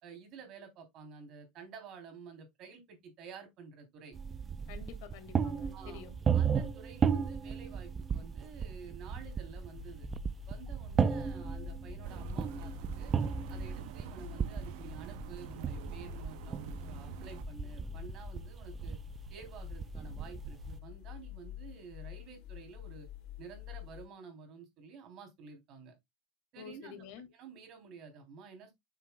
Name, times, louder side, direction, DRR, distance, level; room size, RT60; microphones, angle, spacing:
voice 1, 0.0-4.2 5.7-6.0 6.3-10.1 10.5-13.1 13.5-19.0 19.3-23.1 23.4-25.9 26.5-28.7, right 5 dB, 45° right, 3.2 m, -51 dB
sound 1, 4.1-20.8, right 6 dB, 20° right, 0.4 m, -35 dB
voice 2, 4.7-6.1 26.6-27.3, left 8 dB, 80° left, 2.0 m, -49 dB
sound 2, 9.1-24.1, left 12 dB, 60° left, 2.8 m, -48 dB
sound 3, 12.0-17.4, right 9 dB, 90° right, 0.7 m, -48 dB
9.2 x 6.9 x 2.3 m
cardioid pair, 160°, 0 cm